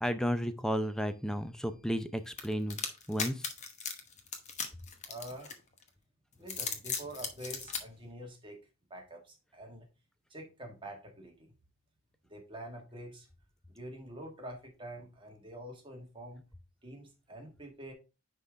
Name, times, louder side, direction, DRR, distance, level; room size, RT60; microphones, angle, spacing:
voice 1, 0.0-2.8 3.1-3.3, equal, 5° left, 10 dB, 0.5 m, -32 dB
sound 1, 2.4-5.8 6.4-7.8, left 6 dB, 30° left, 1.0 m, -37 dB
voice 2, 5.0-5.5 6.4-8.6 8.9-9.9 10.3-11.5 12.3-13.3 13.7-16.4 16.8-17.9, right 1 dB, 20° right, 1 dB, 1.5 m, -46 dB
9.5 x 3.8 x 3.3 m, 0.30 s
head